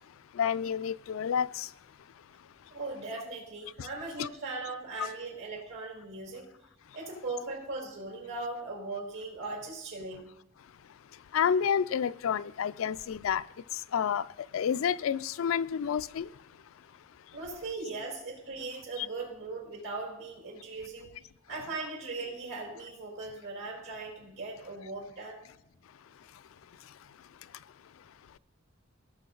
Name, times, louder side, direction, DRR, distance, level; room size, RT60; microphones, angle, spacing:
voice 1, 0.4-1.5 4.2-4.3 11.3-13.4 13.9-14.2 14.5-16.2, left 7 dB, 85° left, 0.4 m, -29 dB
voice 2, 2.7-6.5 6.9-10.3 17.3-21.1 21.5-25.4, right 3 dB, 85° right, 4.7 m, -39 dB
17.5 x 6.5 x 3.9 m
head